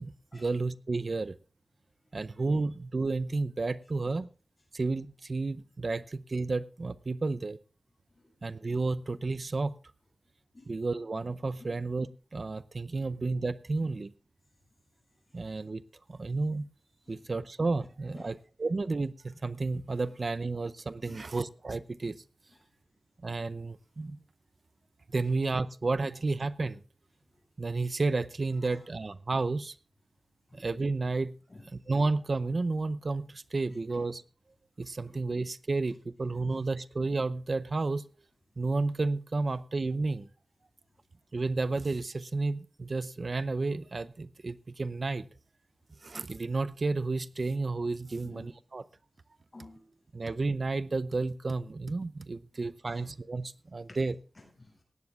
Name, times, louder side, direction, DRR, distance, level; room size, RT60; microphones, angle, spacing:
voice 1, 0.0-1.3 2.1-4.3 4.7-7.6 8.4-9.7 10.7-14.1 15.3-15.8 16.1-16.7 17.1-22.2 23.2-24.2 25.1-26.8 27.6-29.8 30.5-31.3 31.7-34.2 34.8-38.0 38.6-40.3 41.3-45.3 46.0-48.8 50.1-54.1, right 3 dB, 60° right, 17 dB, 0.5 m, -31 dB
voice 2, 48.2-48.5 49.5-49.9 52.8-53.1 53.9-54.0 54.3-54.8, left 2 dB, 45° left, 2 dB, 6.8 m, -52 dB
18.0 x 14.5 x 2.4 m, 0.37 s
wide cardioid pair, 70°, 0 cm